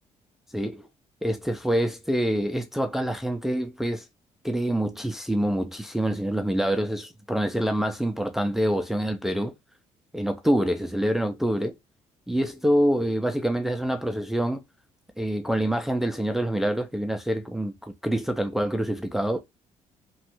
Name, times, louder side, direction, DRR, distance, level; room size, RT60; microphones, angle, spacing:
voice 1, 0.5-0.9 1.2-4.0 4.4-9.5 10.1-11.7 12.3-14.6 15.2-19.4, equal, 5° right, 0.4 m, -26 dB
3.0 x 2.3 x 2.9 m
cardioid pair, 135°, 12 cm